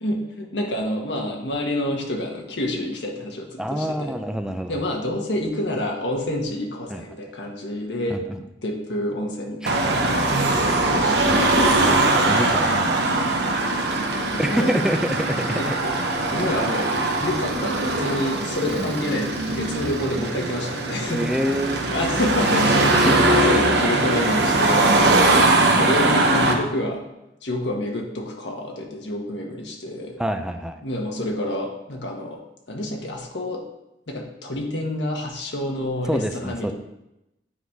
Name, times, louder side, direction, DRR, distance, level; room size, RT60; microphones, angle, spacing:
voice 1, 0.0-4.2 4.7-8.2 8.6-9.8 10.1-12.0 14.1-14.8 15.3-16.0 16.3-16.9 17.2-21.2 21.9-25.0 25.8-27.0 27.4-30.2 30.8-32.4 32.7-33.6 34.1-36.7, left 1 dB, 75° left, 0 dB, 1.4 m, -28 dB
voice 2, 3.6-4.7 6.9-7.0 8.1-8.4 9.6-9.8 11.2-11.4 11.8-13.3 14.4-15.8 16.4-16.6 18.7-19.0 21.1-21.8 22.6-23.5 25.2-25.3 30.2-30.8 36.1-36.7, equal, 5° right, 6 dB, 0.5 m, -27 dB
Car passing by / Traffic noise roadway noise / Engine, 9.7-26.5, right 2 dB, 70° right, 1.0 m, -21 dB
9.3 x 4.1 x 4.7 m, 0.89 s
head